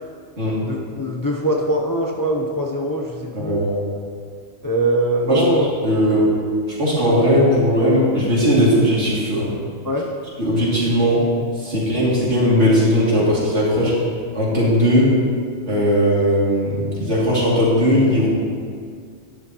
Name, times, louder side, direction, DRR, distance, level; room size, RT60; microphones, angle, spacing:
voice 1, 0.6-3.6 4.6-5.7 6.0-6.1 9.8-10.1, right 1 dB, 20° left, -1 dB, 0.7 m, -22 dB
voice 2, 3.3-3.7 5.3-5.4 5.8-6.3 6.7-9.5 10.4-11.2 11.6-13.9 14.3-15.1 15.7-18.3, equal, 70° right, -7 dB, 3.1 m, -18 dB
12.5 x 10.5 x 3.0 m, 2.1 s
omnidirectional pair, 1.2 m